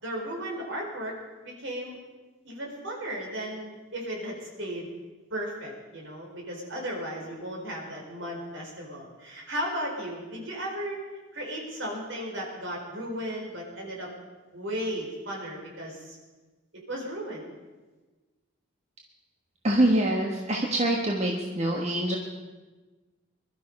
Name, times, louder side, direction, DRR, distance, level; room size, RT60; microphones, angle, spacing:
voice 1, 0.0-1.2 1.4-2.0 2.4-4.9 5.3-11.0 11.3-14.1 14.5-16.2 16.9-17.4, equal, 65° right, -1 dB, 4.4 m, -35 dB
voice 2, 19.6-22.2, right 1 dB, 30° right, 0 dB, 1.4 m, -25 dB
21.5 x 12.5 x 5.4 m, 1.3 s
head